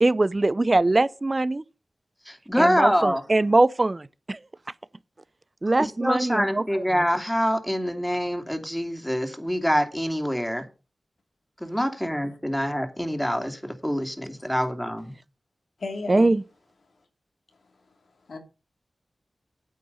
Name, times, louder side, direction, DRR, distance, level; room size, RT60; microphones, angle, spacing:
voice 1, 0.0-1.6 2.6-4.4 5.6-6.6 16.1-16.4, right 2 dB, 40° right, 0.5 m, -22 dB
voice 2, 2.3-3.2 5.8-10.6 11.6-15.1, equal, 5° left, 2.7 m, -25 dB
voice 3, 15.8-16.3 17.7-17.8 18.3-18.4, left 3 dB, 80° left, 3.0 m, -36 dB
9.4 x 8.4 x 5.6 m
cardioid pair, 45°, 0 cm